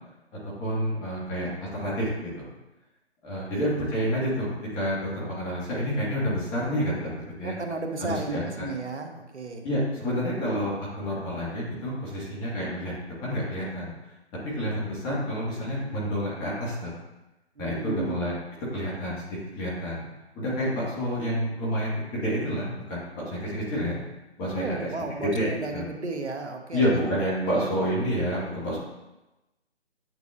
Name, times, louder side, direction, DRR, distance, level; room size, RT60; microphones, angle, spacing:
voice 1, 0.4-2.5 3.2-4.5 4.7-7.1 7.4-7.5 8.1-8.6 9.6-13.9 14.5-16.9 17.6-18.3 18.7-20.1 20.3-24.0 24.4-24.8 25.2-25.8 26.7-28.8, equal, 15° left, -6 dB, 1.7 m, -29 dB
voice 2, 7.4-9.7 17.6-18.2 24.5-26.8 27.2-27.7, right 3 dB, 90° right, 4 dB, 1.2 m, -34 dB
9.3 x 5.1 x 2.5 m, 1.0 s
figure-of-eight pair, 150°, 33 cm